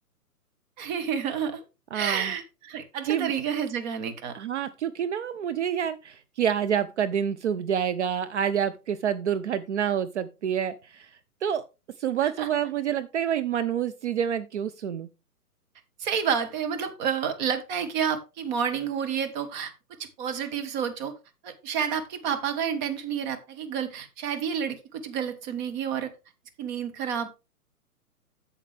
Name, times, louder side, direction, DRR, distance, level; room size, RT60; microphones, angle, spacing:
voice 1, 0.8-1.6 1.9-4.3 12.2-12.5 16.0-19.7 20.0-21.1 21.4-26.1 26.6-27.3, right 7 dB, 30° right, 8 dB, 1.3 m, -30 dB
voice 2, 1.9-2.3 3.1-3.3 4.3-11.1 11.4-11.6 12.0-15.1, right 9 dB, 50° right, 13 dB, 0.6 m, -28 dB
8.6 x 7.2 x 3.4 m, 0.27 s
hypercardioid pair, 145°, 46 cm